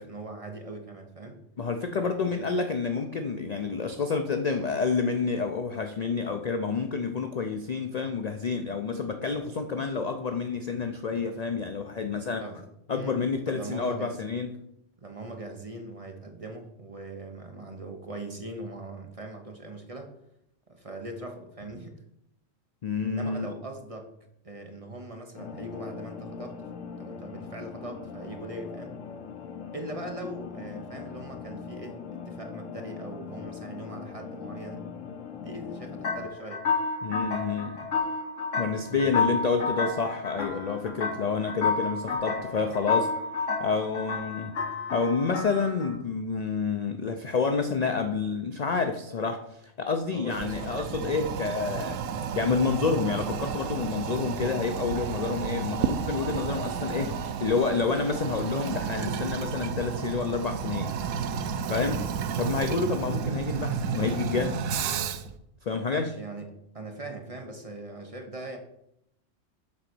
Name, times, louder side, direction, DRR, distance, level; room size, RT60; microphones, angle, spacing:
voice 1, 0.0-1.4 2.2-2.4 12.4-12.6 12.9-13.2 13.5-14.3 15.0-20.1 20.7-22.0 23.0-24.1 24.4-26.7 27.0-29.0 29.7-34.9 35.4-36.7 38.7-39.3 50.1-50.9 61.8-62.1 65.8-68.6, right 2 dB, 30° right, 3 dB, 0.8 m, -41 dB
voice 2, 1.6-12.4 12.9-14.5 22.8-23.5 37.0-37.9 38.6-43.1 43.6-44.6 44.9-60.9 61.7-62.0 62.4-64.8 65.7-66.1, left 4 dB, 50° left, 6 dB, 0.5 m, -29 dB
sound 1, 25.3-36.3, left 6 dB, 90° left, 1.1 m, -41 dB
sound 2, 36.0-45.9, left 4 dB, 70° left, 1.4 m, -30 dB
Toilet flush, 50.3-65.4, right 7 dB, 90° right, 1.0 m, -32 dB
7.5 x 3.9 x 6.0 m, 0.78 s
omnidirectional pair, 1.3 m